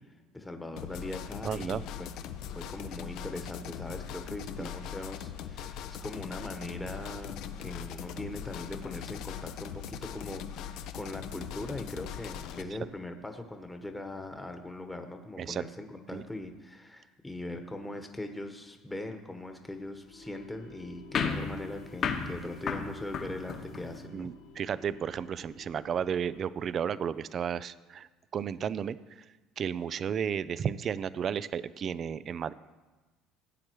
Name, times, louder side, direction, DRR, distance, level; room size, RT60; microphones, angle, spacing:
voice 1, 0.3-2.1 2.5-24.3, left 2 dB, 10° left, 5 dB, 1.2 m, -40 dB
sound 1, 0.8-12.6, left 9 dB, 65° left, 0.7 m, -41 dB
voice 2, 1.4-1.8 4.6-4.7 15.4-15.6 16.1-16.2 24.1-29.0 29.6-32.5, right 8 dB, 45° right, 17 dB, 0.4 m, -33 dB
sound 2, 20.0-26.4, left 4 dB, 85° left, 2.7 m, -51 dB
sound 3, 21.1-24.0, left 6 dB, 50° left, 1.3 m, -34 dB
16.5 x 8.5 x 3.1 m, 1.2 s
hypercardioid pair, 70°, 0 cm